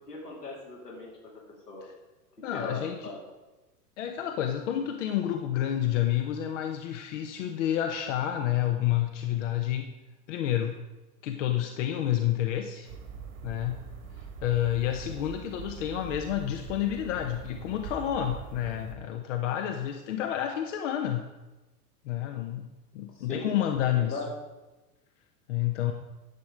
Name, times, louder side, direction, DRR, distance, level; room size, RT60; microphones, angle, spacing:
voice 1, 0.1-1.1 1.7-1.9 2.5-3.2 23.1-24.3, left 3 dB, 80° left, -3 dB, 3.1 m, -39 dB
voice 2, 2.4-3.1 4.0-9.9 10.3-10.8 11.2-12.9 13.4-13.8 14.4-21.2 22.0-22.7 22.9-24.2 25.5-25.9, left 11 dB, 50° left, 6 dB, 0.9 m, -29 dB
sound 1, 12.8-18.9, right 5 dB, 55° right, 1.7 m, -43 dB
10.5 x 7.3 x 4.9 m, 1.1 s
figure-of-eight pair, 90°, 47 cm